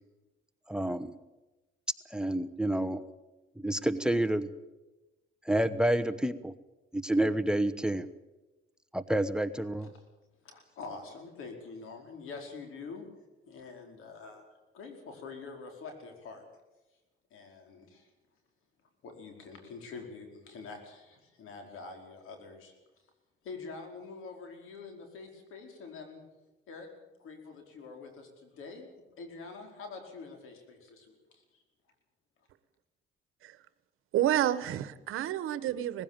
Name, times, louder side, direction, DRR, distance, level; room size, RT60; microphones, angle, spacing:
voice 1, 0.7-1.1 2.1-3.0 3.6-4.5 5.4-6.5 6.9-8.1 8.9-9.9, right 1 dB, 5° right, 14 dB, 1.0 m, -29 dB
voice 2, 10.4-13.1 13.5-14.4 14.7-16.4 17.3-18.1 19.0-22.7 23.4-26.2 26.7-26.9 27.2-28.9 29.2-31.6, left 4 dB, 80° left, 4 dB, 4.8 m, -46 dB
voice 3, 34.1-36.0, right 12 dB, 85° right, 15 dB, 1.2 m, -29 dB
20.0 x 15.5 x 8.9 m, 1.1 s
cardioid pair, 105°, 21 cm